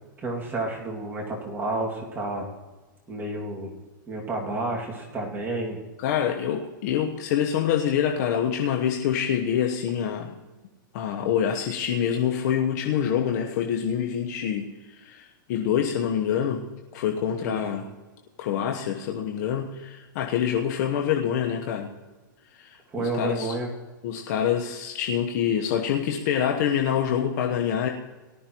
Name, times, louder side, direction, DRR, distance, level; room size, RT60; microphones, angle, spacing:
voice 1, 0.2-2.5 3.1-3.8 4.1-5.8 17.4-17.6 22.9-23.7, right 2 dB, 20° right, -1 dB, 2.3 m, -30 dB
voice 2, 6.0-10.3 10.9-16.6 16.9-17.8 18.4-21.9 22.5-23.5 24.0-27.9, left 9 dB, 55° left, 2 dB, 1.1 m, -26 dB
18.5 x 12.0 x 3.0 m, 1.2 s
hypercardioid pair, 130°, 11 cm